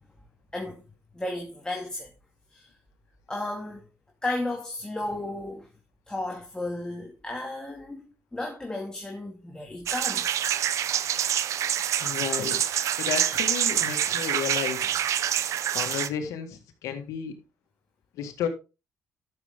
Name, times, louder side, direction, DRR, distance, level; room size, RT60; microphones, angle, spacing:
voice 1, 0.5-0.9 1.1-2.1 2.5-2.7 3.3-3.9 4.2-5.7 6.1-10.3 11.0-11.1, left 2 dB, 15° left, 2.2 m, -34 dB
sound 1, 9.9-16.1, right 10 dB, 70° right, 0.7 m, -26 dB
voice 2, 12.0-12.6 13.0-15.0 15.7-17.4 18.1-18.5, left 8 dB, 85° left, 1.8 m, -32 dB
12.0 x 7.0 x 3.6 m
cardioid pair, 90°, 5 cm